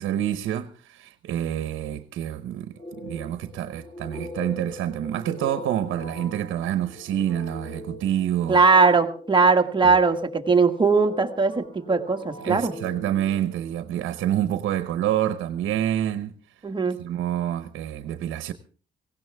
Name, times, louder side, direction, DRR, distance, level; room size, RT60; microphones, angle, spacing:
voice 1, 0.0-8.6 9.8-9.9 12.4-16.3 17.0-18.5, right 11 dB, 80° right, 0.9 m, -27 dB
sound 1, 2.8-14.1, left 2 dB, 35° left, 5.4 m, -41 dB
voice 2, 8.5-12.7 16.6-17.0, right 4 dB, 25° right, 1.5 m, -20 dB
17.5 x 16.5 x 3.5 m
cardioid pair, 90°, 20 cm